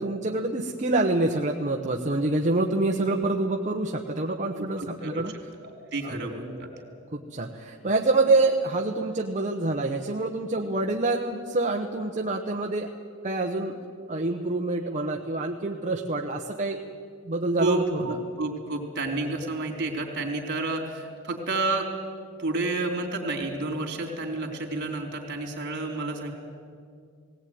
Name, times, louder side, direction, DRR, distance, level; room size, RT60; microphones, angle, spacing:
voice 1, 0.0-5.3 6.0-6.2 7.1-12.9 13.2-13.8 14.1-16.8 17.2-18.2, right 2 dB, 35° right, 2 dB, 1.0 m, -26 dB
voice 2, 4.5-5.1 5.6-6.7 17.6-21.9 22.4-26.3, right 2 dB, 50° right, 3 dB, 3.4 m, -30 dB
19.0 x 18.5 x 9.4 m, 2.3 s
head